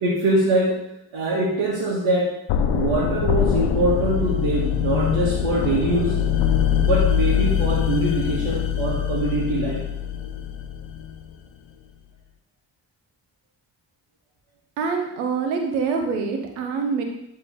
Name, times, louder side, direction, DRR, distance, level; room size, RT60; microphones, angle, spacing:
voice 1, 0.0-0.8 1.1-2.3 2.7-6.2 6.7-9.8, right 2 dB, 75° right, -6 dB, 1.8 m, -23 dB
sound 1, 2.5-11.3, left 9 dB, 65° left, 0.8 m, -23 dB
voice 2, 14.8-17.0, right 5 dB, 90° right, 4 dB, 1.0 m, -25 dB
11.0 x 3.8 x 3.7 m, 0.83 s
hypercardioid pair, 40°, 49 cm